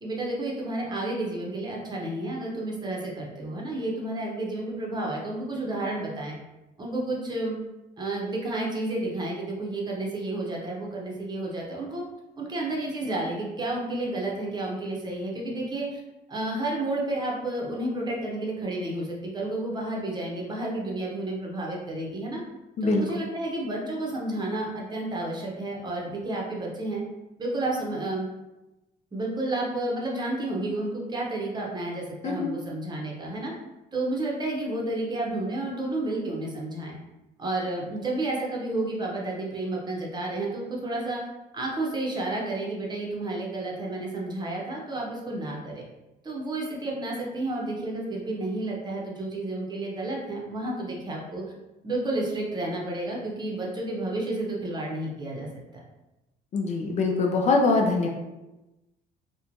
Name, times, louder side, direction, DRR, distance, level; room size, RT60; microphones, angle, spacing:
voice 1, 0.0-6.4 6.8-7.5 8.0-12.0 12.4-16.0 16.3-22.4 22.8-27.0 27.4-28.3 29.1-33.5 33.9-37.0 37.4-41.2 41.5-45.8 46.2-51.4 51.8-55.5, right 2 dB, 25° right, -3 dB, 0.7 m, -31 dB
voice 2, 56.5-58.1, left 3 dB, 45° left, 1 dB, 0.4 m, -23 dB
2.9 x 2.2 x 2.5 m, 1.0 s
cardioid pair, 110°, 17 cm